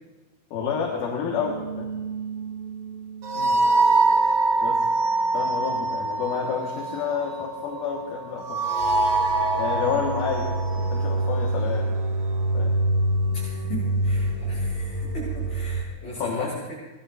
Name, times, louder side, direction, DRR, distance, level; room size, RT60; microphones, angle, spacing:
voice 1, 0.5-1.9 4.6-4.9 5.3-8.6 9.6-11.9 12.5-12.7 16.2-16.5, left 6 dB, 65° left, 0 dB, 3.0 m, -29 dB
sound 1, 1.3-15.8, right 2 dB, 90° right, 1.4 m, -25 dB
voice 2, 13.3-16.7, left 1 dB, 45° left, -7 dB, 8.5 m, -38 dB
25.5 x 20.0 x 2.5 m, 1.2 s
omnidirectional pair, 5.1 m